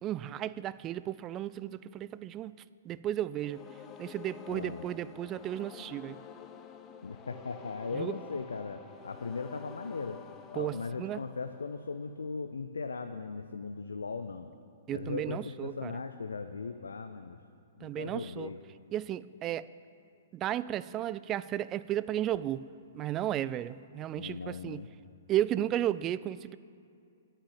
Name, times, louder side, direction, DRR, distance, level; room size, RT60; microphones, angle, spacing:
voice 1, 0.0-3.6 4.0-6.2 7.9-8.2 10.6-11.2 14.9-16.0 17.8-18.5 18.9-19.7 20.3-22.7 22.9-24.8 25.3-26.6, right 12 dB, 25° right, 17 dB, 0.3 m, -34 dB
sound 1, 3.3-12.2, left 6 dB, 25° left, 0.7 m, -50 dB
voice 2, 4.5-4.8 7.0-10.2 10.5-14.5 14.9-17.4 17.8-18.6 24.2-24.9, left 4 dB, 70° left, 8 dB, 0.6 m, -38 dB
11.0 x 9.0 x 8.9 m, 2.5 s
figure-of-eight pair, 115°, 0 cm